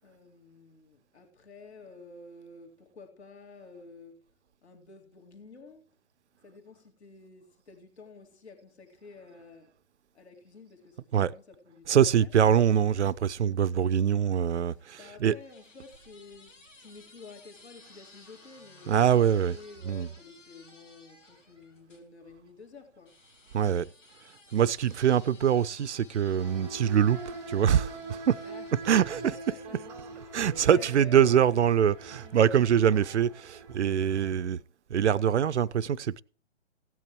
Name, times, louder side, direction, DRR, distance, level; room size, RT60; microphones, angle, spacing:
voice 1, 0.0-4.2 4.6-5.9 6.4-9.8 10.1-12.3 14.6-23.2 28.4-28.7 29.3-29.8 30.1-31.4, left 4 dB, 60° left, 2.5 m, -51 dB
voice 2, 11.9-15.4 18.9-19.6 19.8-20.1 23.5-23.9 24.5-28.4 28.8-29.8 30.3-34.6 34.9-36.2, right 9 dB, 65° right, 0.6 m, -24 dB
sound 1, 15.1-22.1 23.1-31.0 31.8-33.5, left 2 dB, 90° left, 2.6 m, -57 dB
sound 2, 26.4-34.5, right 3 dB, 5° right, 0.6 m, -43 dB
16.5 x 9.3 x 3.1 m
figure-of-eight pair, 130°, 36 cm